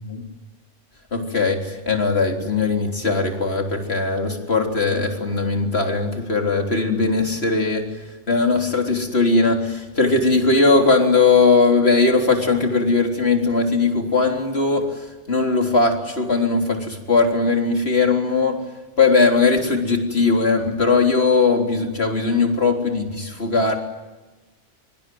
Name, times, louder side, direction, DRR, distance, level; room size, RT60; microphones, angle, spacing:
voice 1, 1.1-7.8 8.3-14.9 15.3-18.6 19.0-23.8, left 3 dB, 55° left, 2 dB, 4.0 m, -19 dB
24.5 x 24.5 x 9.5 m, 1.2 s
omnidirectional pair, 1.3 m